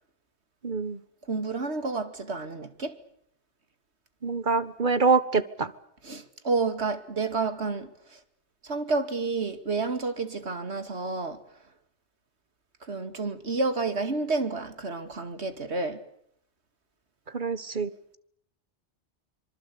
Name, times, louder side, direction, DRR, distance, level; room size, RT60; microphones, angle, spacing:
voice 1, 0.6-1.0 4.2-5.7 17.3-17.9, right 4 dB, 45° right, 1.5 m, -25 dB
voice 2, 1.3-2.9 6.0-8.2 8.6-11.4 12.9-16.0, right 3 dB, 70° right, 2.6 m, -30 dB
26.0 x 24.5 x 8.6 m
omnidirectional pair, 1.2 m